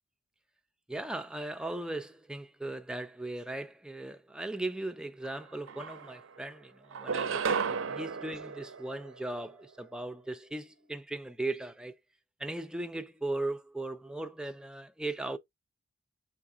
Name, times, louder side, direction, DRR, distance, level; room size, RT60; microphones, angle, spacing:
voice 1, 0.9-12.0 12.4-15.4, right 2 dB, 5° right, 0.3 m, -38 dB
sound 1, 5.2-5.3 5.7-6.4 6.9-9.5, right 5 dB, 65° right, 0.5 m, -34 dB
5.7 x 3.7 x 2.3 m
head